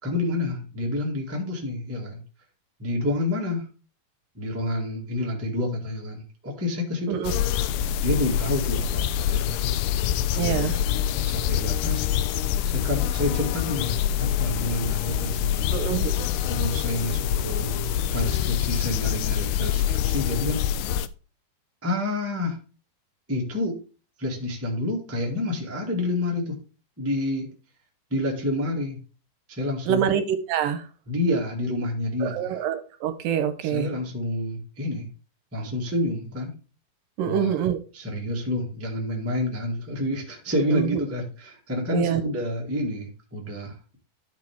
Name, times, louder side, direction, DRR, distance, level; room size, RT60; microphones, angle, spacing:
voice 1, 0.0-2.2 2.8-3.6 4.3-7.2 8.0-9.7 10.3-10.8 11.2-12.1 12.7-15.8 16.4-20.6 21.8-22.6 23.3-23.8 24.2-26.6 27.0-27.5 28.1-29.0 29.5-30.0 31.1-32.6 33.6-35.1 35.5-36.5 37.2-37.6 37.9-43.9, left 1 dB, 20° right, -1 dB, 0.3 m, -29 dB
sound 1, 7.2-21.1, left 10 dB, 90° left, 2.5 m, -25 dB
voice 2, 10.4-10.7 15.7-16.1 29.9-30.2 30.5-30.8 32.2-33.9 37.2-37.8 40.7-40.9 41.9-42.2, right 9 dB, 75° right, 9 dB, 2.3 m, -25 dB
13.0 x 4.6 x 3.5 m, 0.35 s
omnidirectional pair, 4.3 m